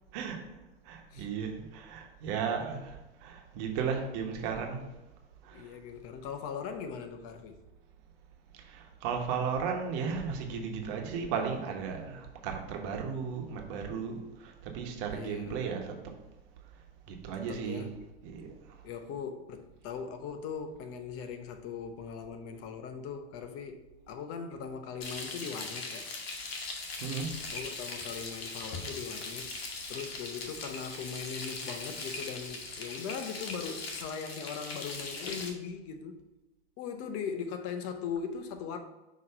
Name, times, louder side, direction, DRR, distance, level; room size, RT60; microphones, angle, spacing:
voice 1, 0.8-4.9 5.4-5.7 8.6-16.0 17.1-17.9 18.2-18.5 27.0-27.4, right 6 dB, 60° right, 1.2 m, -35 dB
voice 2, 5.5-7.6 15.1-15.6 17.5-17.9 18.8-23.8 24.1-26.1 27.5-29.5 29.9-36.3 36.8-38.8, left 6 dB, 50° left, 0.8 m, -39 dB
Frying (food), 25.0-35.5, left 3 dB, 85° left, 1.1 m, -40 dB
5.7 x 3.0 x 5.4 m
hypercardioid pair, 90°, 30 cm